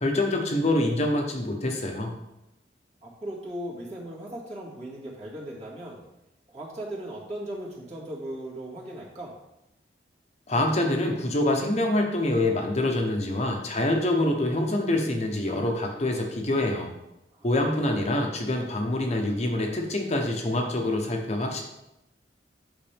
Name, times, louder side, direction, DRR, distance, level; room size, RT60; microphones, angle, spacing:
voice 1, 0.0-2.1 10.5-16.9 17.4-21.6, left 1 dB, 40° left, 2 dB, 0.9 m, -25 dB
voice 2, 3.0-6.0 6.5-9.4 17.3-17.5 17.8-18.2, right 1 dB, 40° right, -5 dB, 2.3 m, -38 dB
8.7 x 6.0 x 3.5 m, 0.88 s
head